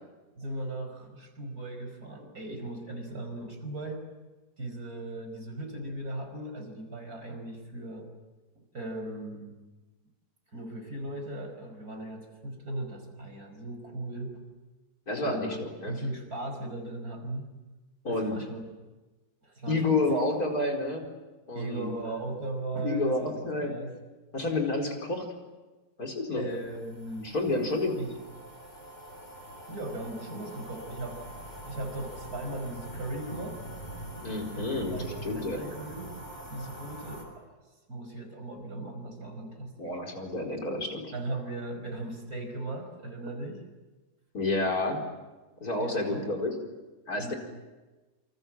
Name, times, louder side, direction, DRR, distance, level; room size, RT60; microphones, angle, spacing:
voice 1, 0.4-4.0 4.6-8.1 8.7-9.6 10.5-14.4 15.2-17.5 18.1-18.6 19.4-20.0 21.5-24.0 26.4-27.3 28.0-28.1 29.7-31.2 31.6-33.6 34.5-36.1 36.5-37.4 37.9-39.9 41.1-43.6 45.8-46.3 47.2-47.3, right 2 dB, 60° right, 5 dB, 5.7 m, -38 dB
voice 2, 15.1-15.9 18.0-18.4 19.7-21.0 21.5-21.9 22.8-23.8 24.3-25.3 26.0-26.4 27.2-28.0 34.2-35.6 39.8-41.1 44.3-45.0 45.6-46.5 47.1-47.3, left 2 dB, 60° left, 2 dB, 5.1 m, -29 dB
sound 1, 26.5-37.2, right 1 dB, 25° left, 6.5 m, -44 dB
28.0 x 27.0 x 7.6 m, 1.2 s
omnidirectional pair, 1.8 m